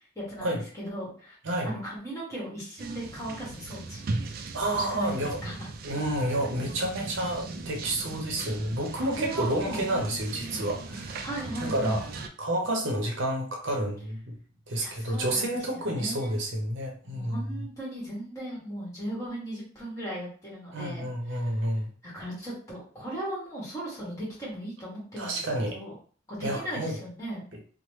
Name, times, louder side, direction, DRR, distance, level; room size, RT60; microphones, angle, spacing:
voice 1, 0.1-1.3 1.6-4.0 4.7-5.7 9.0-9.9 10.4-10.6 11.2-12.0 14.8-16.3 17.0-21.5 22.0-25.9 26.3-27.5, right 1 dB, 15° left, -6 dB, 1.3 m, -37 dB
sound 1, 2.8-12.3, right 3 dB, 45° right, 0.3 m, -38 dB
voice 2, 4.5-5.4 5.8-11.3 11.6-12.1 12.4-14.3 14.7-17.5 20.7-21.9 25.2-25.8 26.4-27.0, right 1 dB, 70° right, 1 dB, 0.7 m, -30 dB
3.0 x 2.1 x 3.1 m, 0.44 s
head